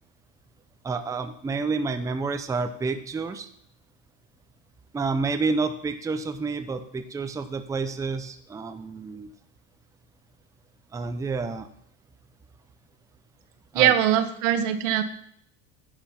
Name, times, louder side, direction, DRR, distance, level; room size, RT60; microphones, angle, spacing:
voice 1, 0.8-3.5 4.9-9.3 10.9-11.7 13.7-13.9, right 4 dB, 10° right, 8 dB, 0.6 m, -29 dB
voice 2, 13.7-15.0, right 11 dB, 85° right, 9 dB, 1.3 m, -21 dB
10.5 x 6.9 x 5.7 m, 0.67 s
supercardioid pair, 140°, 37 cm